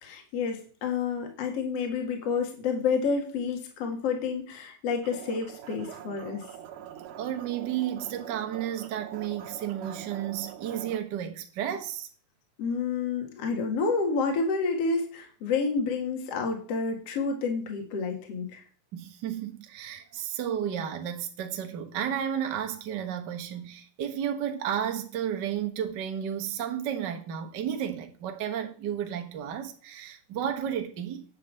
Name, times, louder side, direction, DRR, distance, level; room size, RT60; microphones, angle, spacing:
voice 1, 0.0-6.4 12.6-18.6, left 5 dB, 50° left, 2.6 m, -29 dB
sound 1, 5.0-11.0, right 10 dB, 70° right, 2.6 m, -44 dB
voice 2, 7.2-12.1 18.9-31.2, right 9 dB, 85° right, 0.9 m, -32 dB
10.5 x 5.6 x 7.6 m
omnidirectional pair, 4.2 m